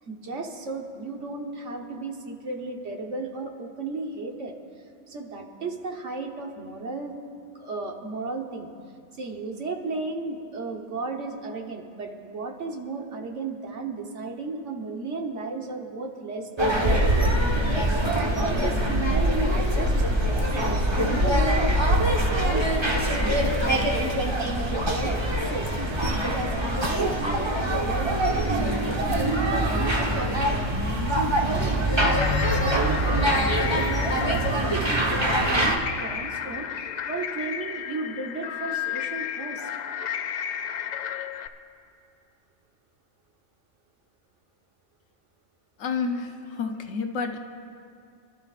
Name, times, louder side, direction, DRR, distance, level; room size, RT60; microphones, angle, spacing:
voice 1, 0.0-4.5 5.1-7.2 7.5-8.7 9.2-20.1 20.5-24.1 24.5-25.7 26.1-30.7 31.1-39.7, right 3 dB, 75° right, 2 dB, 1.5 m, -34 dB
sound 1, 16.6-35.8, right 1 dB, 20° right, 1.1 m, -24 dB
sound 2, 31.9-41.5, left 9 dB, 70° left, 0.4 m, -33 dB
voice 2, 45.8-47.4, left 5 dB, 85° left, 5 dB, 1.2 m, -29 dB
25.5 x 12.5 x 2.5 m, 2.4 s
omnidirectional pair, 1.3 m